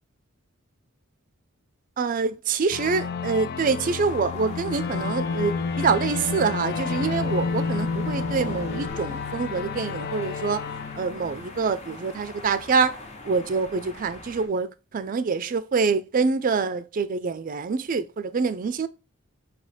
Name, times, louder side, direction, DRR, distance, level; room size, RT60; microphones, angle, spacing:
voice 1, 2.0-10.7 11.0-18.9, right 5 dB, 40° right, 0.4 m, -26 dB
sound 1, 2.7-12.0, left 7 dB, 50° left, 0.3 m, -33 dB
sound 2, 4.0-14.5, left 2 dB, 35° left, 0.9 m, -42 dB
sound 3, 4.3-8.9, left 3 dB, 90° left, 0.9 m, -30 dB
5.5 x 2.9 x 3.3 m
head